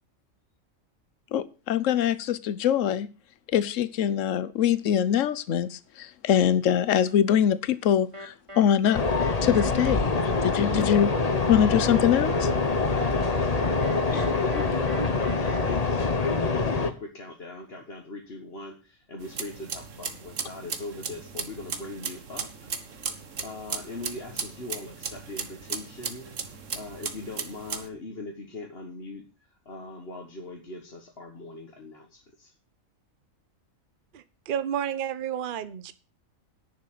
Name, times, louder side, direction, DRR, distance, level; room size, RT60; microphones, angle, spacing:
voice 1, 1.3-3.1 3.5-9.0 9.4-11.1 11.5-12.5, left 9 dB, 70° left, 1.1 m, -23 dB
sound 1, 8.1-15.6, equal, 25° right, 1.7 m, -41 dB
sound 2, 8.9-16.9, left 3 dB, 30° left, 1.1 m, -25 dB
voice 2, 11.9-22.7 23.4-26.3 26.8-29.2 29.7-32.5, left 2 dB, 50° left, 1.7 m, -40 dB
sound 3, 19.2-27.9, right 6 dB, 65° right, 1.7 m, -36 dB
voice 3, 34.1-35.9, right 9 dB, 45° right, 0.9 m, -31 dB
10.5 x 7.3 x 7.6 m
omnidirectional pair, 1.4 m